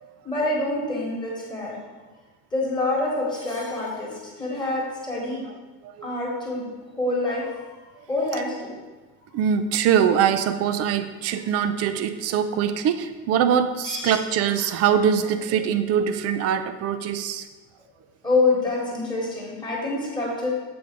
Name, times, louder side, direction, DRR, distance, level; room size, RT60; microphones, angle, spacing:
voice 1, 0.2-1.8 2.5-5.5 6.0-7.5 8.1-8.7 13.8-14.2 18.2-20.5, left 2 dB, 15° left, -4 dB, 1.4 m, -26 dB
voice 2, 9.3-17.5, right 8 dB, 50° right, 11 dB, 0.5 m, -23 dB
7.8 x 3.4 x 5.1 m, 1.3 s
cardioid pair, 170°, 32 cm